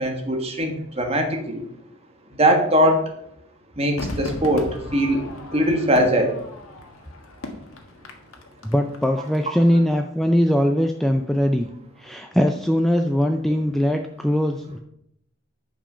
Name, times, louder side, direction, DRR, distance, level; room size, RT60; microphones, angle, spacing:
voice 1, 0.0-1.6 2.4-3.0 3.8-5.2 5.5-6.4, equal, 30° right, 3 dB, 1.4 m, -21 dB
Crowd / Fireworks, 4.0-9.4 9.6-9.7, left 2 dB, 85° left, 1.5 m, -36 dB
voice 2, 8.6-11.7 12.0-14.8, equal, ahead, 4 dB, 0.4 m, -21 dB
10.0 x 5.1 x 5.5 m, 0.76 s
head